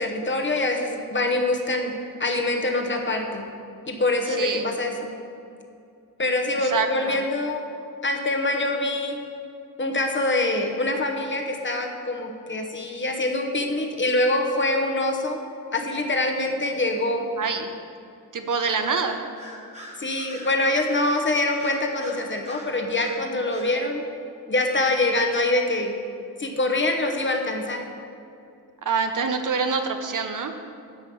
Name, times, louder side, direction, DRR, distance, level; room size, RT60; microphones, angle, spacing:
voice 1, 0.0-3.4 3.9-5.1 6.2-7.6 8.0-9.2 9.8-15.4 15.7-17.3 18.8-19.0 20.0-24.0 24.5-25.9 26.4-27.9, left 2 dB, 30° left, 3 dB, 1.0 m, -25 dB
voice 2, 4.3-4.7 6.6-7.2 17.4-17.7 18.3-19.2 28.8-30.5, right 5 dB, 55° right, 6 dB, 0.8 m, -26 dB
Bird vocalization bird call bird song, 18.6-19.0 19.4-23.2 23.5-23.7, right 1 dB, 20° right, 1.5 m, -43 dB
10.5 x 5.5 x 7.0 m, 2.5 s
wide cardioid pair, 160°, 37 cm